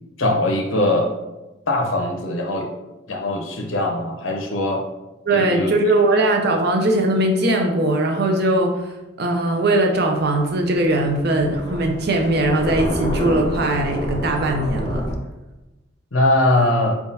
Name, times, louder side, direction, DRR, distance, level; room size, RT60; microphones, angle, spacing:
voice 1, 0.2-1.1 1.7-2.7 3.1-4.8 5.3-5.7 16.1-17.0, left 1 dB, 75° left, 2 dB, 0.8 m, -21 dB
voice 2, 5.3-8.9 9.2-15.1, right 1 dB, 55° right, 2 dB, 0.6 m, -20 dB
Thunder, 10.2-15.1, left 1 dB, 20° left, 0.7 m, -28 dB
4.6 x 3.6 x 2.7 m, 1.0 s
head